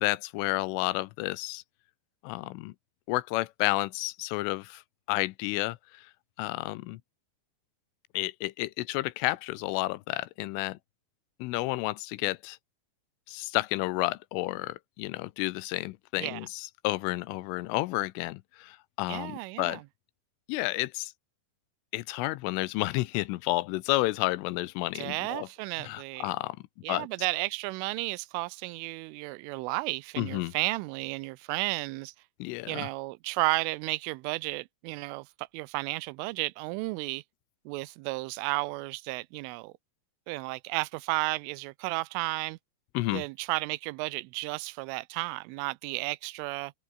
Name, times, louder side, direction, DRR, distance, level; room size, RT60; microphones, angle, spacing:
voice 1, 0.0-1.6 2.2-2.7 3.1-4.8 5.1-6.1 6.4-7.0 8.1-10.8 11.4-12.6 13.3-19.8 20.5-21.1 21.9-25.5 25.8-26.6 26.9-27.1 30.2-30.5 32.4-32.9 42.9-43.2, left 20 dB, 85° left, 3.4 m, -31 dB
voice 2, 19.1-19.8 24.9-26.3 26.8-32.1 32.7-37.2 37.7-39.7 40.3-42.6 43.1-46.7, right 23 dB, 85° right, 3.2 m, -33 dB
omnidirectional pair, 5.6 m